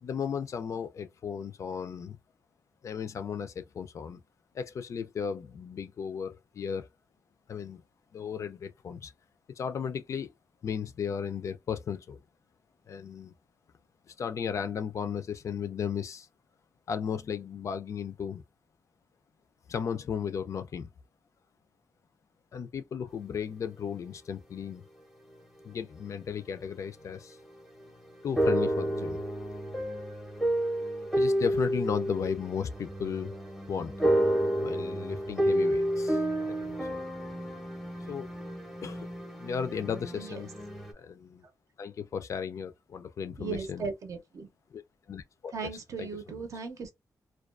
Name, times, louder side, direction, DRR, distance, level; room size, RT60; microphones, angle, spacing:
voice 1, 0.0-2.2 2.8-4.2 4.5-6.9 7.5-7.8 8.1-9.1 9.5-10.3 10.6-12.2 12.9-13.3 14.1-16.3 16.9-18.4 19.7-20.9 22.5-24.8 25.6-27.4 28.2-29.2 31.2-33.3 33.7-33.9 34.6-37.0 38.1-38.3 38.8-39.1 39.4-40.5 40.9-41.5 41.8-43.9 44.7-44.8 45.1-45.5 46.0-46.1, left 7 dB, 50° left, 0.3 m, -35 dB
sound 1, 27.1-27.2 27.8-40.9, right 1 dB, ahead, 0.6 m, -30 dB
voice 2, 40.1-40.4 43.4-44.5 45.5-46.9, right 5 dB, 55° right, 0.6 m, -37 dB
2.3 x 2.2 x 2.4 m
wide cardioid pair, 165°, 7 cm